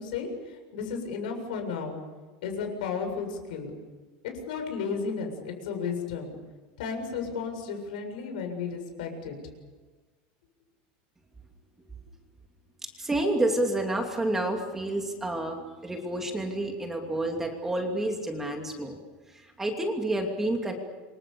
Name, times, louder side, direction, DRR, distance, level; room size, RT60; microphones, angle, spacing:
voice 1, 0.0-2.0 2.4-3.7 4.2-6.4 6.8-9.4, left 5 dB, 90° left, 5 dB, 7.4 m, -33 dB
voice 2, 12.8-19.0 19.3-20.7, right 1 dB, 10° right, 2 dB, 2.8 m, -29 dB
28.0 x 24.5 x 7.1 m, 1.3 s
supercardioid pair, 165°, 4 cm